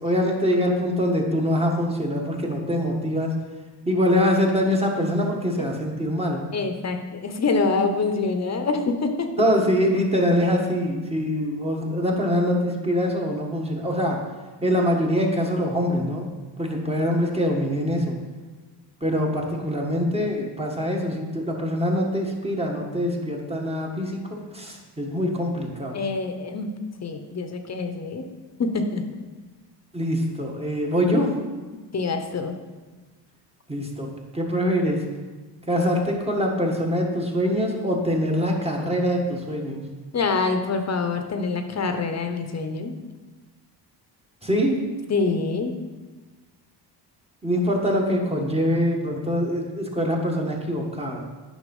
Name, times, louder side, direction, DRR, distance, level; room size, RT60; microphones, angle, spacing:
voice 1, 0.0-3.3 3.9-6.4 9.4-14.2 14.6-16.3 16.6-18.2 19.0-26.1 29.9-31.3 33.7-34.1 34.3-35.0 35.7-39.8 44.4-44.8 47.4-51.3, equal, 15° right, 0 dB, 1.7 m, -24 dB
voice 2, 6.5-9.3 25.9-26.7 27.0-28.3 28.6-29.0 31.1-31.2 31.9-32.5 40.1-42.9 45.1-45.7, left 4 dB, 40° left, 7 dB, 1.1 m, -25 dB
10.0 x 5.9 x 5.5 m, 1.3 s
cardioid pair, 110°, 42 cm